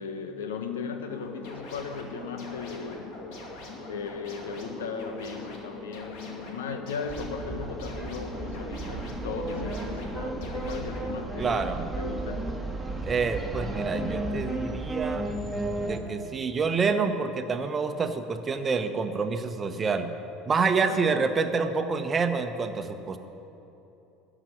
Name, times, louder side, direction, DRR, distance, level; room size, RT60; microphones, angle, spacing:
voice 1, 0.0-3.2 3.9-12.5 20.8-21.3, left 5 dB, 80° left, 7 dB, 1.0 m, -37 dB
sound 1, 1.1-11.2, left 2 dB, 65° left, 2.5 m, -42 dB
sound 2, 7.1-16.0, right 2 dB, 10° right, 1.8 m, -33 dB
voice 2, 11.4-11.9 13.0-15.3 15.8-20.1 20.5-23.2, right 5 dB, 30° right, 8 dB, 1.0 m, -27 dB
13.0 x 6.1 x 9.8 m, 2.9 s
hypercardioid pair, 75°, 0 cm